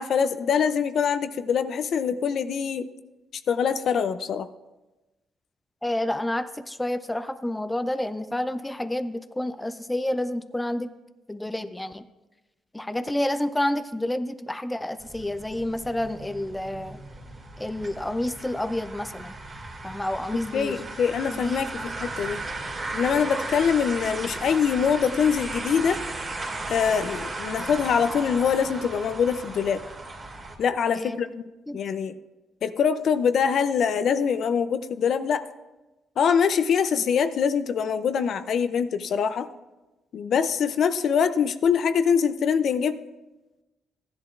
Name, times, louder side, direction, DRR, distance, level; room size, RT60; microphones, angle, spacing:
voice 1, 0.0-2.9 3.5-4.5 20.5-22.4 22.9-26.0 26.7-29.8 30.6-31.4 31.7-32.2 32.6-35.4 36.2-39.5 40.1-43.0, left 7 dB, 60° left, 11 dB, 0.5 m, -24 dB
voice 2, 5.8-10.9 11.3-12.0 12.7-17.0 17.6-19.4 19.8-20.9 21.3-21.9 30.9-31.2 31.7-31.8, left 1 dB, 10° left, 11 dB, 0.5 m, -29 dB
sound 1, 15.0-30.6, right 2 dB, 40° right, 2.3 m, -36 dB
15.5 x 10.5 x 2.5 m, 1.1 s
cardioid pair, 100°, 0 cm